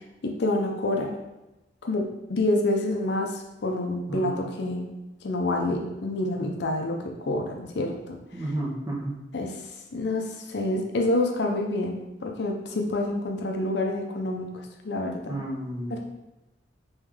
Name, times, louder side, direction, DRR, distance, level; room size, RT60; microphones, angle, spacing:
voice 1, 0.2-1.1 1.8-4.9 5.2-8.5 9.3-9.6 9.9-15.4 15.9-16.0, left 2 dB, 65° left, 2 dB, 0.5 m, -28 dB
voice 2, 8.3-9.1 15.3-16.0, right 1 dB, 20° right, -4 dB, 0.8 m, -31 dB
3.2 x 3.1 x 3.6 m, 0.97 s
head